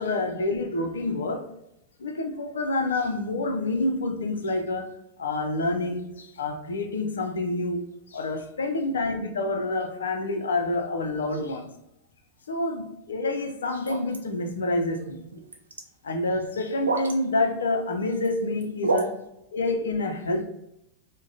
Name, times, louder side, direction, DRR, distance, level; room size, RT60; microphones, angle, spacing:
voice 1, 0.0-1.5 2.0-4.9 5.2-11.7 12.5-15.4 16.0-19.2 19.5-20.5, left 2 dB, 65° left, 0.5 m, -28 dB
sound 1, 13.8-14.2 15.3-15.8 16.8-17.1 18.0-18.3 18.6-19.1, right 3 dB, 75° right, 0.5 m, -27 dB
4.7 x 2.2 x 2.6 m
figure-of-eight pair, 90°, 0 cm